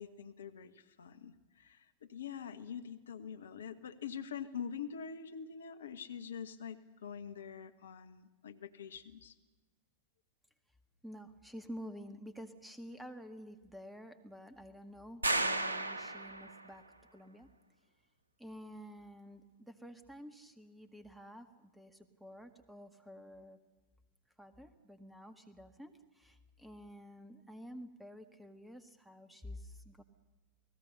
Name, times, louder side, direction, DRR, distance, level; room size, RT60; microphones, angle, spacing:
voice 1, 0.0-9.3, left 7 dB, 65° left, 10 dB, 1.2 m, -45 dB
voice 2, 11.0-16.8 17.1-17.5 18.4-23.6 24.4-30.0, equal, 5° right, 9 dB, 1.9 m, -50 dB
sound 1, 15.2-16.7, right 2 dB, 80° right, 0.9 m, -34 dB
29.0 x 19.5 x 6.8 m, 1.2 s
figure-of-eight pair, 90°, 0 cm